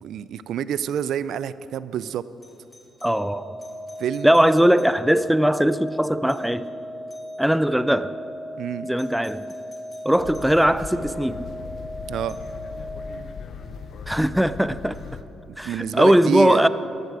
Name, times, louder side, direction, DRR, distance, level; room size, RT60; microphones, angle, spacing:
voice 1, 0.0-2.2 4.0-4.3 8.6-8.9 12.1-12.4 15.5-16.7, right 9 dB, 75° right, 16 dB, 0.4 m, -27 dB
Doorbell, 2.4-5.4 6.3-6.7 7.1-7.6 9.0-10.6 12.3-12.6 14.9-15.1, left 2 dB, 25° left, 1.9 m, -53 dB
voice 2, 3.0-3.6 4.2-6.7 7.4-8.1 8.8-9.5 10.0-11.5 14.1-15.0 15.6-16.7, equal, 5° right, 14 dB, 0.4 m, -20 dB
sound 1, 3.1-13.1, equal, 35° right, 2.3 m, -37 dB
sound 2, 10.2-15.2, left 6 dB, 60° left, 0.8 m, -38 dB
13.0 x 13.0 x 4.9 m, 2.9 s
cardioid pair, 90°, 0 cm